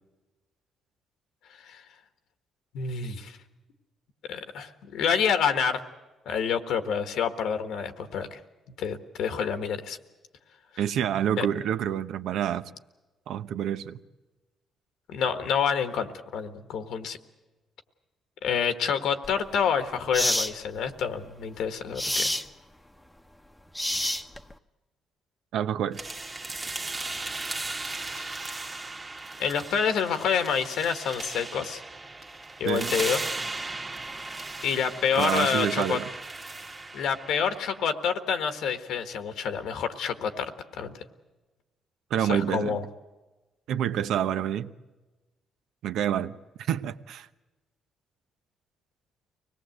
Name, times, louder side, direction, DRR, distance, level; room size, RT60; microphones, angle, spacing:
voice 1, 2.7-3.4 4.3-5.8 6.2-8.4 8.8-10.0 11.4-11.5 15.1-17.2 18.4-22.3 28.2-28.4 29.4-31.8 32.6-33.2 34.6-36.0 36.9-41.0 42.3-42.8, left 7 dB, 80° left, 8 dB, 1.5 m, -28 dB
voice 2, 10.8-12.6 13.3-14.0 25.5-26.0 32.6-32.9 35.2-36.1 42.1-42.8 43.7-44.7 45.8-46.3 46.7-47.3, right 10 dB, 80° right, 11 dB, 0.8 m, -27 dB
sound 1, 19.2-19.4 20.1-20.5 22.0-22.5 23.7-24.5, left 1 dB, 5° left, 0.9 m, -27 dB
sound 2, 25.9-37.9, right 2 dB, 25° right, 1.5 m, -36 dB
24.5 x 18.5 x 7.9 m, 1.1 s
cardioid pair, 90°, 0 cm